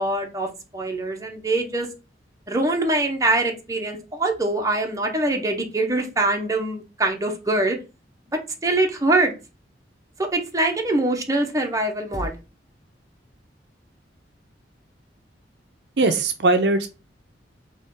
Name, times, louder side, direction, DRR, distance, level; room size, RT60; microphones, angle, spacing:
voice 1, 0.0-1.9 2.5-7.8 8.6-9.3 10.3-12.3, right 2 dB, 20° right, 2 dB, 0.8 m, -23 dB
voice 2, 16.0-16.9, right 2 dB, 65° right, 8 dB, 0.5 m, -20 dB
4.2 x 3.0 x 3.6 m, 0.30 s
head